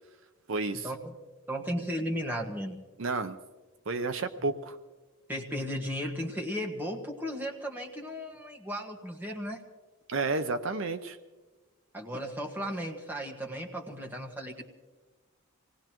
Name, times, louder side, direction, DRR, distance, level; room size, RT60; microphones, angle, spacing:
voice 1, 0.5-0.9 3.0-3.4 3.9-4.8 10.1-11.2, right 3 dB, 65° right, 9 dB, 0.7 m, -31 dB
voice 2, 1.5-2.8 5.3-9.6 11.9-14.6, equal, 10° right, 1 dB, 1.5 m, -35 dB
25.5 x 19.0 x 3.0 m, 1.3 s
head